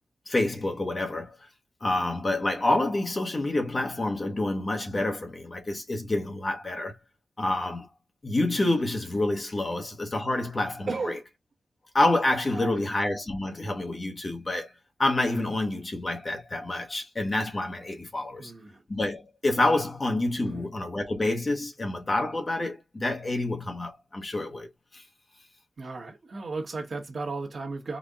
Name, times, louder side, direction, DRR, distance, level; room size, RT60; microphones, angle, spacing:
voice 1, 0.3-1.3 1.8-7.0 7.4-7.9 8.2-11.2 11.9-14.7 15.0-18.5 18.9-24.7 24.9-25.0, left 2 dB, 30° left, 0.9 m, -28 dB
voice 2, 10.9-11.2 12.5-12.9 18.4-18.8 20.4-20.7 25.8-28.0, right 3 dB, 50° right, 1.1 m, -35 dB
4.1 x 2.2 x 3.5 m
wide cardioid pair, 150°, 0 cm